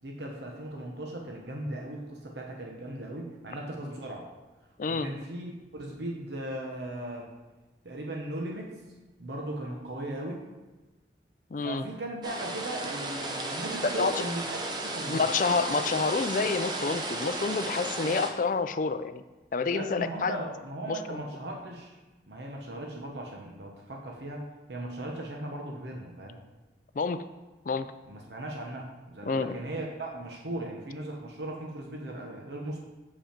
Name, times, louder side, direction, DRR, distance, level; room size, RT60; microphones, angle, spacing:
voice 1, 0.0-4.3 4.9-7.3 7.8-8.7 9.2-10.4 11.6-15.3 19.7-21.9 22.3-26.4 28.1-32.8, right 1 dB, 70° right, 0 dB, 1.0 m, -38 dB
voice 2, 11.5-11.9 13.8-14.1 15.1-19.2 19.5-20.4 20.9-21.2 27.0-27.2 27.7-27.9 29.3-29.6, left 4 dB, 45° left, 11 dB, 0.4 m, -28 dB
sound 1, 12.2-18.3, right 2 dB, 25° right, 0.7 m, -34 dB
7.2 x 5.3 x 5.1 m, 1.1 s
head